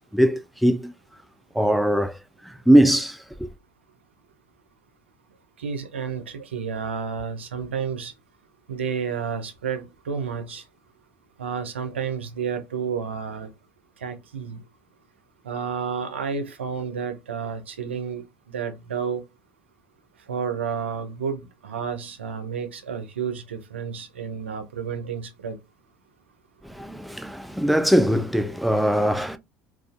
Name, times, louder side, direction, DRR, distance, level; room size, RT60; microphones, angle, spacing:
voice 1, 0.1-0.9 1.5-3.5 26.6-29.4, equal, ahead, 0.3 m, -21 dB
voice 2, 5.6-8.1 8.7-10.6 11.4-13.5 14.0-14.6 15.4-19.2 20.3-25.6, right 6 dB, 90° right, 0.4 m, -31 dB
2.3 x 2.3 x 2.3 m
hypercardioid pair, 65°, 6 cm